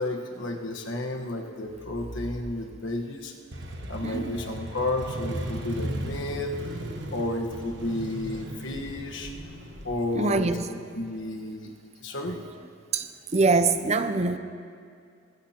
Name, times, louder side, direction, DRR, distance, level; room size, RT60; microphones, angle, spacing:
voice 1, 0.0-3.3 3.9-9.3 9.8-11.7 12.0-12.4, left 2 dB, 70° left, 2 dB, 1.3 m, -32 dB
sound 1, 1.6-3.0 3.5-10.5, left 1 dB, 45° left, 1.5 m, -45 dB
Motorcycle, 3.5-11.1, right 1 dB, 60° right, 1.2 m, -37 dB
voice 2, 4.0-4.4 10.1-10.6 12.9-13.1 13.3-14.4, right 3 dB, 30° right, 10 dB, 0.5 m, -23 dB
20.0 x 17.0 x 2.9 m, 2.3 s
head